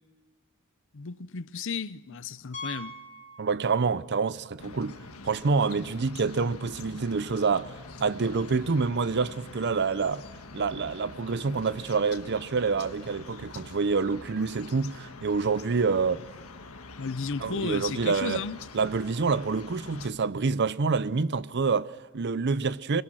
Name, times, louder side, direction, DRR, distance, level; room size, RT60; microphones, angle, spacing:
voice 1, 0.9-2.9 17.0-18.6, left 5 dB, 60° left, 0.7 m, -34 dB
Piano, 2.5-4.1 4.4-4.6 5.1-5.2 5.5-5.6 7.7-7.8, left 1 dB, 35° left, 2.8 m, -42 dB
voice 2, 3.4-5.0 5.2-7.7 8.0-10.2 10.5-16.2 17.4-18.4 18.7-23.0, right 4 dB, 55° right, 0.6 m, -27 dB
sound 1, 4.6-20.1, left 3 dB, 85° left, 1.5 m, -45 dB
24.5 x 21.5 x 6.2 m
head